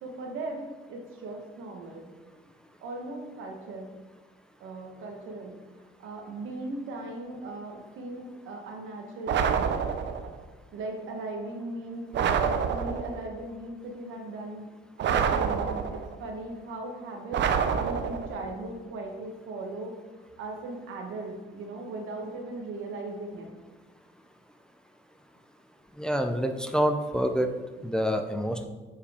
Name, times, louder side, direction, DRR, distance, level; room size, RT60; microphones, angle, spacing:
voice 1, 0.0-2.1 2.8-3.9 4.6-5.5 6.0-9.5 10.7-14.6 15.1-17.4 17.7-19.9 20.4-23.5, right 2 dB, 85° right, 2 dB, 1.2 m, -38 dB
sound 1, 9.3-10.3 12.1-13.2 15.0-16.2 17.3-18.4, right 7 dB, 65° right, 0.6 m, -27 dB
voice 2, 26.0-27.5 27.8-28.7, equal, 5° left, 5 dB, 0.5 m, -27 dB
7.0 x 4.6 x 3.5 m, 1.3 s
cardioid pair, 90°, 20 cm